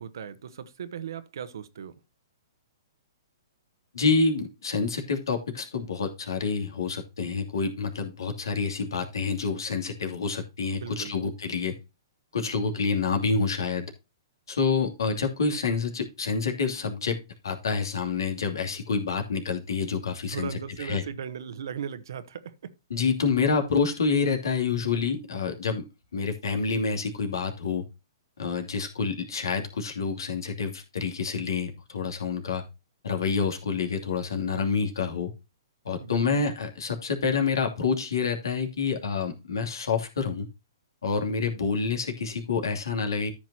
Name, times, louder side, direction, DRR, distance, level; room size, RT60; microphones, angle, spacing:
voice 1, 0.0-2.0 10.8-11.2 20.3-22.8 36.0-36.4, right 7 dB, 65° right, 1.1 m, -38 dB
voice 2, 3.9-11.8 12.3-13.9 14.5-20.5 20.8-21.0 22.9-25.9 26.1-27.9 28.4-32.6 33.0-35.3 35.8-40.5 41.0-43.3, left 5 dB, 70° left, 2.7 m, -28 dB
13.5 x 5.9 x 2.8 m
figure-of-eight pair, 120°, 2 cm